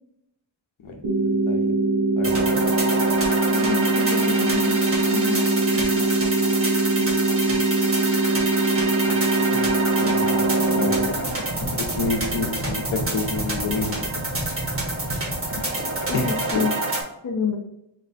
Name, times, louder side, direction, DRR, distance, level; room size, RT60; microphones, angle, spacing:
voice 1, 0.8-1.2 1.5-1.7 2.2-2.6 9.1-9.7 10.0-10.5 10.7-11.0 11.7-14.0 16.1-16.3 16.5-16.6, left 3 dB, 80° left, 2 dB, 0.9 m, -29 dB
sound 1, 1.0-11.0, right 2 dB, 70° right, 1.3 m, -22 dB
sound 2, 2.2-17.0, right 2 dB, 25° right, 1.0 m, -27 dB
voice 2, 3.5-4.8 5.1-6.6 7.0-7.2 16.1-16.7 17.2-17.6, left 6 dB, 40° left, 1 dB, 0.6 m, -30 dB
4.1 x 2.2 x 4.0 m, 0.81 s
wide cardioid pair, 165°, 48 cm